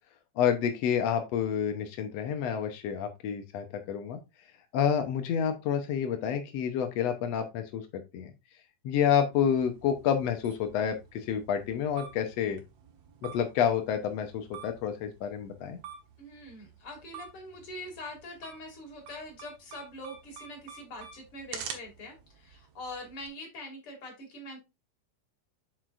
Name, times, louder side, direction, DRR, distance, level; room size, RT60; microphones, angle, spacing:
voice 1, 0.4-4.2 4.7-8.3 8.8-12.6 13.2-15.8, left 8 dB, 80° left, 6 dB, 1.4 m, -29 dB
sound 1, 9.3-23.3, right 7 dB, 60° right, 1.8 m, -48 dB
voice 2, 16.2-24.6, left 1 dB, 40° left, 1 dB, 3.1 m, -43 dB
7.6 x 6.6 x 2.5 m, 0.24 s
omnidirectional pair, 4.2 m